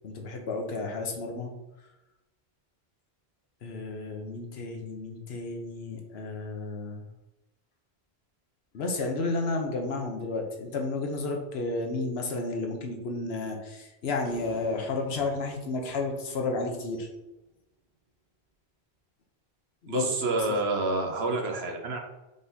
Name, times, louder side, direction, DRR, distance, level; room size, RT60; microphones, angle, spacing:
voice 1, 0.0-1.5 3.6-7.0 8.7-17.1 19.8-20.1, left 3 dB, 75° left, 3 dB, 1.0 m, -32 dB
sound 1, 14.2-17.6 20.4-20.5, right 2 dB, 40° left, 1.6 m, -49 dB
voice 2, 19.9-22.0, right 2 dB, 75° right, 2 dB, 1.1 m, -28 dB
5.1 x 3.8 x 2.7 m, 0.98 s
omnidirectional pair, 1.1 m